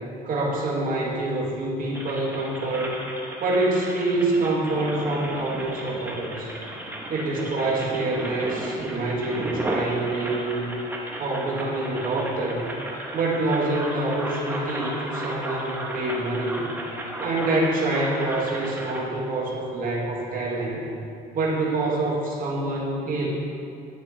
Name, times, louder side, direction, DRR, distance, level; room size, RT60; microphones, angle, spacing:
voice 1, 0.2-3.0 3.4-6.5 7.1-10.7 11.2-12.7 13.1-16.7 17.2-20.9 21.3-23.3, right 2 dB, 55° right, -4 dB, 2.0 m, -26 dB
sound 1, 1.9-19.0, right 1 dB, 10° right, 1.2 m, -34 dB
10.0 x 9.3 x 2.8 m, 2.6 s
cardioid pair, 110°, 17 cm